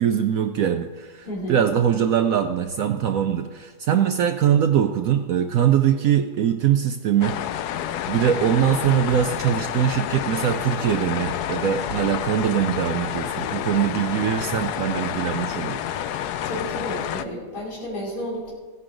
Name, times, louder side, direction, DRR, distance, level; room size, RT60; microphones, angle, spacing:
voice 1, 0.0-7.4 8.1-15.8, right 9 dB, 85° right, 6 dB, 0.7 m, -22 dB
voice 2, 1.2-1.6 16.5-18.5, equal, 55° left, -6 dB, 3.9 m, -31 dB
sound 1, 7.2-17.3, left 10 dB, 75° left, 0.9 m, -29 dB
15.5 x 9.5 x 3.9 m, 1.3 s
omnidirectional pair, 2.1 m